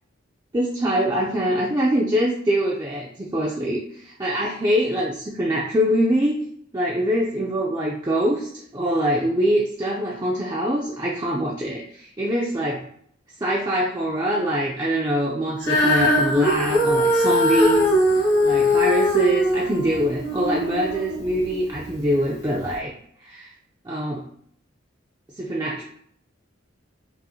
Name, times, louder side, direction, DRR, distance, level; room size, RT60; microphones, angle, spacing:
voice 1, 0.5-6.4 6.7-12.8 13.4-17.9 18.4-22.9 23.2-23.5 23.8-24.3 25.3-25.8, equal, 20° right, -3 dB, 0.4 m, -24 dB
Female singing, 15.6-22.0 22.7-22.8, left 1 dB, 55° left, 1.0 m, -21 dB
5.4 x 2.5 x 2.7 m, 0.66 s
head